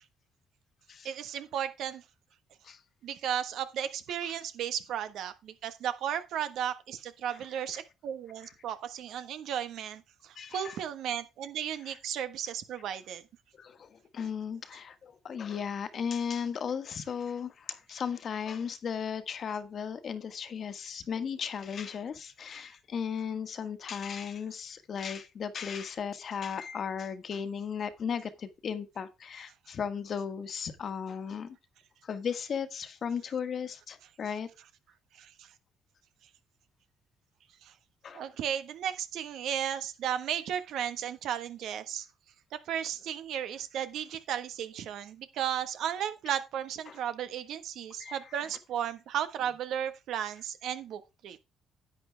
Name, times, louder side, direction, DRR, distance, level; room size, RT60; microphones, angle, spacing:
voice 1, 1.0-2.0 3.0-13.2 35.2-35.5 37.6-37.7 38.1-42.1 42.7-51.4, right 9 dB, 75° right, 1.3 m, -35 dB
voice 2, 10.3-10.8 11.9-12.0 13.6-31.6 32.0-34.5 38.0-38.3 46.9-47.0 48.0-48.5, left 7 dB, 55° left, 1.4 m, -36 dB
10.5 x 8.5 x 3.4 m
supercardioid pair, 70°, 0 cm